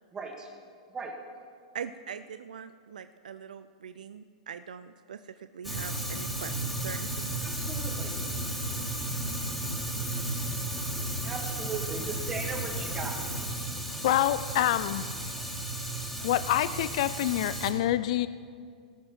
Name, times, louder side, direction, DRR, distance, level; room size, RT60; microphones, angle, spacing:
voice 1, 0.1-0.5 0.9-1.1 7.4-8.1 11.2-13.2, right 4 dB, 20° right, 2 dB, 2.0 m, -37 dB
voice 2, 1.7-7.4, right 7 dB, 80° right, 11 dB, 0.4 m, -42 dB
Fire, 5.6-17.7, right 1 dB, ahead, 2.4 m, -34 dB
voice 3, 14.0-15.1 16.2-18.3, left 13 dB, 60° left, 14 dB, 0.4 m, -26 dB
18.5 x 6.2 x 6.1 m, 2.1 s
hypercardioid pair, 120°, 4 cm